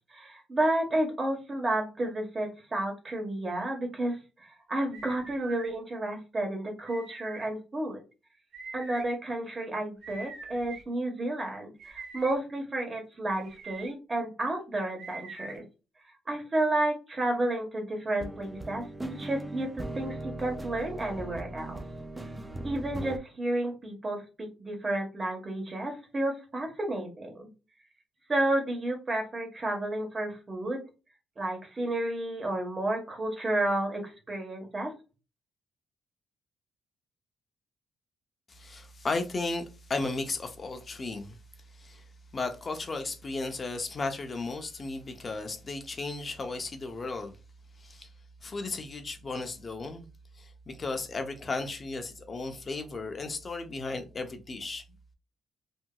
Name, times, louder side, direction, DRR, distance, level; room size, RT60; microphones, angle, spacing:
voice 1, 0.1-8.0 8.7-15.6 16.3-21.8 22.6-27.3 28.3-30.8 31.4-34.9, right 1 dB, 30° right, 1.2 m, -31 dB
sound 1, 4.9-5.7 6.9-7.5 8.5-9.0 10.0-10.8 11.8-12.3 13.4-13.9 15.0-15.6, right 4 dB, 65° right, 0.9 m, -44 dB
sound 2, 18.2-23.2, right 1 dB, 10° right, 0.3 m, -39 dB
voice 2, 38.5-41.4 41.7-42.0 42.3-47.3 47.8-48.1 48.4-50.1 50.4-54.8, left 3 dB, 35° left, 0.6 m, -35 dB
2.8 x 2.6 x 2.3 m
cardioid pair, 90°, 0 cm